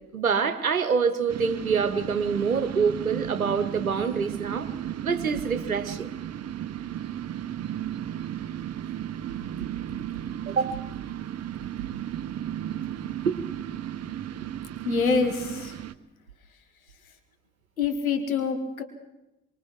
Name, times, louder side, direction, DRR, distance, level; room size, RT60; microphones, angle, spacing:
voice 1, 0.1-4.7 5.0-6.1 10.5-10.8 13.2-13.4, right 5 dB, 90° right, 11 dB, 1.1 m, -26 dB
sound 1, 1.3-15.9, right 11 dB, 40° right, 1.0 m, -34 dB
voice 2, 14.8-15.8 17.8-18.8, left 5 dB, 85° left, 6 dB, 1.6 m, -26 dB
26.5 x 24.0 x 4.6 m, 0.93 s
figure-of-eight pair, 50°, 41 cm